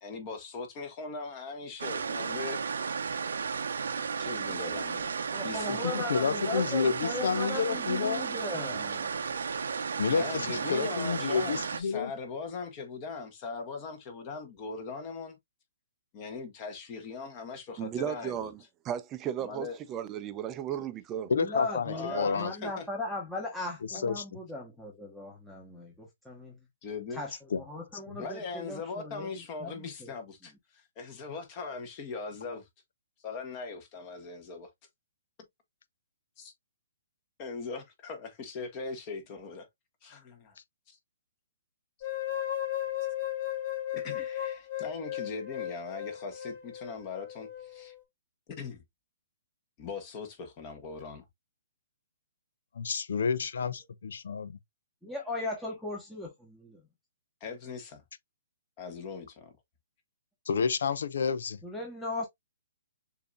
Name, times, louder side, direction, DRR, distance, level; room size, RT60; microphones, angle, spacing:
voice 1, 0.0-2.6 4.2-5.1 5.4-6.0 10.1-15.4 16.1-18.5 19.4-19.8 21.9-22.8 26.8-27.2 28.2-30.5 31.0-32.6 33.2-34.7 36.4-36.5 37.4-39.7 40.0-40.6 40.9-41.0 43.9-47.9 48.5-48.8 49.8-51.2 57.4-58.0 58.8-59.5, left 4 dB, 30° left, 1.4 m, -40 dB
sound 1, 1.8-11.8, right 5 dB, 80° right, 0.8 m, -34 dB
voice 2, 5.0-9.1 21.3-26.6 27.1-29.3 29.6-30.1 55.0-56.8 61.6-62.3, left 2 dB, 5° left, 1.1 m, -37 dB
voice 3, 5.7-8.3 10.0-12.1 21.3-22.5 23.9-24.4 27.5-27.6 28.1-28.2 52.7-54.5 60.5-61.6, left 5 dB, 70° left, 0.7 m, -30 dB
voice 4, 17.8-21.3, right 10 dB, 20° right, 0.6 m, -35 dB
sound 2, 42.0-48.0, left 12 dB, 45° left, 3.5 m, -36 dB
6.7 x 2.8 x 2.4 m
hypercardioid pair, 150°, 0 cm